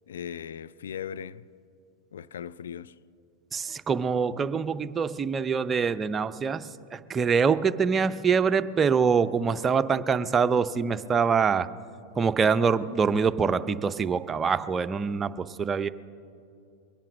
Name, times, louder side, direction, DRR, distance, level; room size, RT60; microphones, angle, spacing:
voice 1, 0.1-1.5 2.1-3.0, left 8 dB, 80° left, 0.4 m, -38 dB
voice 2, 3.5-11.7 12.1-15.9, right 6 dB, 25° right, 0.6 m, -25 dB
23.0 x 9.0 x 6.1 m
hypercardioid pair, 105°, 0 cm